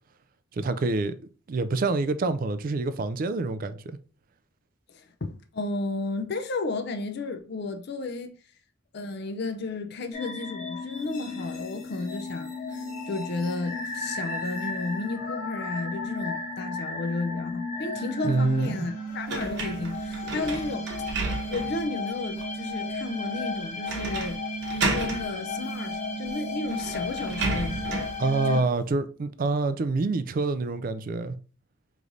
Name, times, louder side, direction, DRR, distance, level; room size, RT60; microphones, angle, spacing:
voice 1, 0.5-1.2 1.5-4.0 18.2-18.9 28.2-31.4, right 3 dB, 45° right, 0.3 m, -26 dB
voice 2, 4.9-8.4 8.9-24.4 24.7-27.8 28.5-28.6, left 3 dB, 55° left, 0.5 m, -33 dB
sound 1, 10.1-28.6, left 2 dB, 40° left, 1.1 m, -34 dB
sound 2, 19.3-21.8 22.4-22.5 23.9-24.3 24.6-25.2 26.3-26.4 26.7-28.2, right 3 dB, 60° right, 0.9 m, -31 dB
5.0 x 3.1 x 2.6 m
head